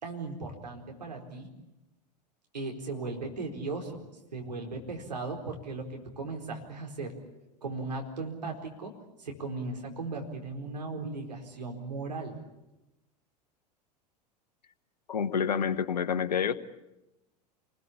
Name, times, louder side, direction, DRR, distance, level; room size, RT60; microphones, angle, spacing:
voice 1, 0.0-1.5 2.5-4.0 4.3-7.1 7.6-8.9 9.2-12.4, right 3 dB, 80° right, 2 dB, 4.5 m, -37 dB
voice 2, 15.1-16.5, left 7 dB, 70° left, 12 dB, 1.3 m, -28 dB
28.0 x 20.5 x 8.5 m, 0.96 s
figure-of-eight pair, 85°, 21 cm